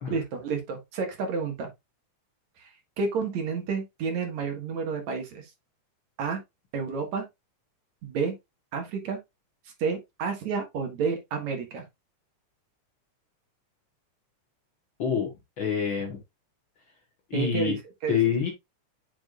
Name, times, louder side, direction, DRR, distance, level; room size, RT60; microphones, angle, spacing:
voice 1, 0.1-1.7 2.6-5.4 6.2-6.4 6.7-7.3 8.0-8.3 8.7-9.2 9.8-11.9 17.3-17.8 18.0-18.2, right 5 dB, 65° right, 2.8 m, -30 dB
voice 2, 15.0-15.3 15.6-16.2 17.3-17.7 18.1-18.5, left 7 dB, 50° left, 1.7 m, -26 dB
7.6 x 6.1 x 2.4 m
omnidirectional pair, 3.5 m